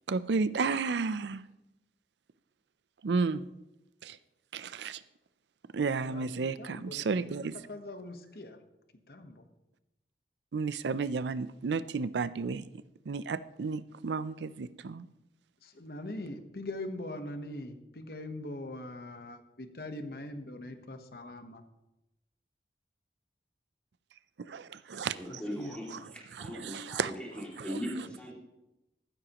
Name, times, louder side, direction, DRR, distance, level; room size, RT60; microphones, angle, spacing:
voice 1, 0.1-1.4 3.0-3.5 4.0-4.2 4.5-5.0 5.7-7.6 10.5-12.7 13.1-15.1 24.4-25.2 25.9-26.0 26.3-27.1 27.6-27.8, right 4 dB, 80° right, 16 dB, 0.5 m, -32 dB
voice 2, 6.1-8.6 9.1-9.4 15.6-21.6 25.3-26.0, left 1 dB, 60° left, 7 dB, 1.1 m, -42 dB
voice 3, 25.1-28.3, equal, 5° left, -3 dB, 2.5 m, -39 dB
14.5 x 12.5 x 3.0 m, 0.94 s
head